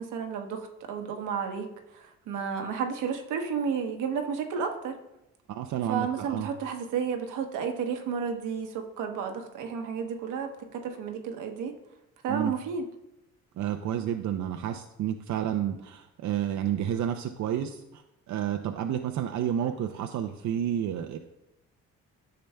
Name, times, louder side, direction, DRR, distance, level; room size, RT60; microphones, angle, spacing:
voice 1, 0.0-5.0 5.9-11.7 12.2-12.9, right 6 dB, 85° right, 5 dB, 1.0 m, -32 dB
voice 2, 5.5-6.5 12.3-12.5 13.6-21.2, right 10 dB, 70° right, 5 dB, 0.5 m, -30 dB
10.0 x 6.7 x 2.2 m, 0.91 s
cardioid pair, 90°, 30 cm